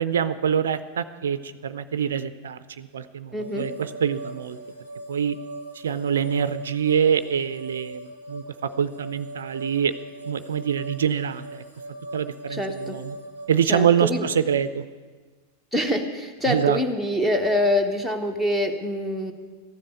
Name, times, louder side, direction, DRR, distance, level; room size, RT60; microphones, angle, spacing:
voice 1, 0.0-4.6 5.1-5.4 5.7-8.4 8.8-9.9 10.2-11.6 12.1-13.2 13.5-14.9 16.5-16.8, right 8 dB, 65° right, 13 dB, 0.5 m, -25 dB
voice 2, 3.3-3.7 12.5-13.0 13.7-14.2 15.7-19.3, left 1 dB, 5° left, 6 dB, 1.3 m, -25 dB
sound 1, 3.4-13.5, right 1 dB, 90° left, 3.3 m, -40 dB
14.0 x 7.4 x 9.5 m, 1.5 s
figure-of-eight pair, 90°, 0 cm